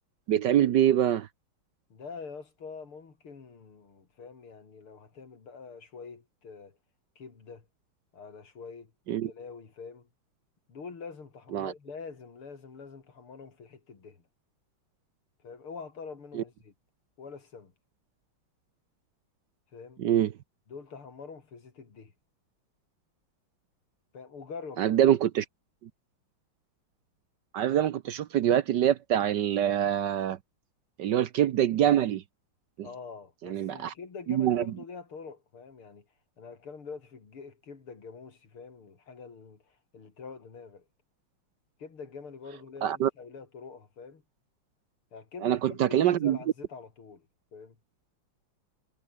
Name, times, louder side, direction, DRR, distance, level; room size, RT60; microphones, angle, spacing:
voice 1, 0.3-1.3 9.1-9.3 11.5-11.7 16.3-16.4 20.0-20.3 24.8-25.4 27.5-30.4 31.0-32.2 32.8-32.9 33.4-33.9 34.3-34.6 42.8-43.1 45.4-46.4, right 11 dB, 65° right, 1.2 m, -25 dB
voice 2, 1.9-6.8 7.2-7.7 8.1-8.9 9.2-10.1 10.7-14.3 15.4-16.7 17.2-17.7 19.7-20.0 20.7-22.1 24.1-24.9 32.8-36.1 36.4-40.9 41.8-44.2 45.1-47.8, left 5 dB, 80° left, 4.3 m, -45 dB
omnidirectional pair, 2.4 m